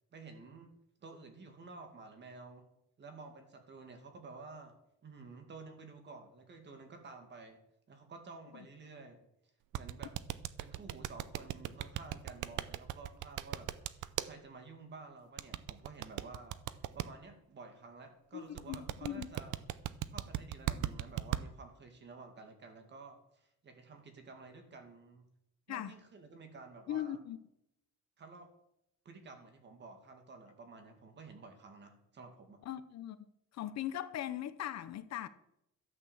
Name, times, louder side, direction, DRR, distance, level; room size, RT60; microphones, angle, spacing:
voice 1, 0.1-0.7 1.0-2.7 3.0-4.8 5.0-7.6 7.9-9.2 9.7-10.1 10.6-13.7 14.2-16.6 16.9-19.6 20.1-25.3 25.7-27.2 28.2-28.5 29.0-32.6, right 3 dB, 35° right, 2.2 m, -52 dB
sound 1, 9.7-14.3 15.4-17.1 18.6-21.4, right 14 dB, 90° right, 0.7 m, -37 dB
voice 2, 18.3-19.3 25.7-25.9 26.9-27.4 32.6-33.2 33.5-35.3, left 11 dB, 60° left, 0.8 m, -39 dB
13.0 x 8.5 x 7.3 m
cardioid pair, 180°, 30 cm